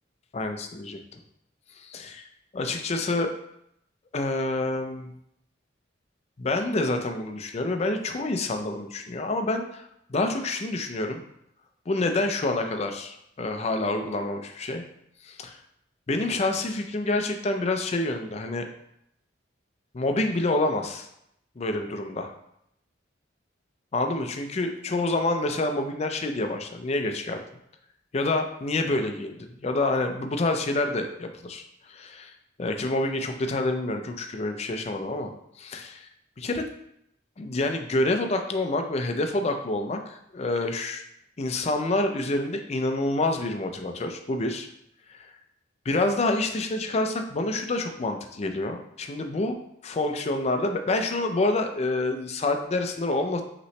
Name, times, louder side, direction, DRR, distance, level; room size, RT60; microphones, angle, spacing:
voice 1, 0.3-1.2 1.8-2.2 2.5-3.3 4.1-5.1 6.4-9.8 10.1-11.2 11.9-14.8 15.2-15.5 16.1-18.7 19.9-21.1 21.6-22.3 23.9-27.4 28.1-31.6 31.9-32.3 32.6-35.3 35.6-36.1 36.4-36.6 37.4-41.0 41.4-44.7 45.2-45.3 45.9-49.5 49.8-53.4, left 2 dB, 35° left, 5 dB, 0.4 m, -27 dB
5.4 x 3.0 x 3.1 m, 0.77 s
head